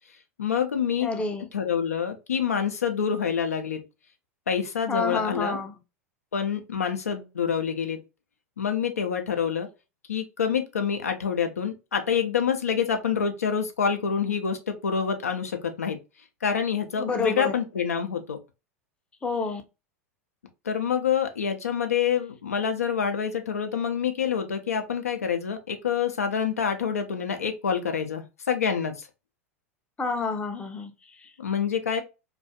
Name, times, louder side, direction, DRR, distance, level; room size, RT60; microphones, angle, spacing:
voice 1, 0.4-1.1 1.5-3.8 4.5-5.6 6.3-8.0 8.6-9.7 10.1-16.0 16.4-18.4 20.6-29.1 31.4-32.0, left 7 dB, 80° left, 0.4 m, -27 dB
voice 2, 1.0-1.5 4.9-5.7 17.0-17.6 19.2-19.6 30.0-31.3, left 4 dB, 15° left, 0.5 m, -29 dB
2.3 x 2.3 x 2.6 m
figure-of-eight pair, 85°, 8 cm